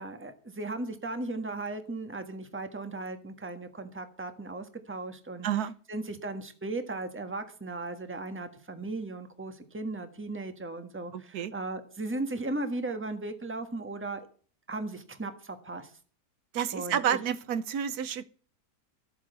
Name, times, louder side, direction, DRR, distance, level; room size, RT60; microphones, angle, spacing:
voice 1, 0.0-5.5 5.9-14.3 14.7-15.9 16.7-17.2, right 2 dB, 10° right, 7 dB, 1.3 m, -36 dB
voice 2, 5.4-5.8 11.1-11.5 16.5-18.3, right 9 dB, 70° right, 15 dB, 1.3 m, -30 dB
14.0 x 8.8 x 6.9 m, 0.43 s
omnidirectional pair, 1.8 m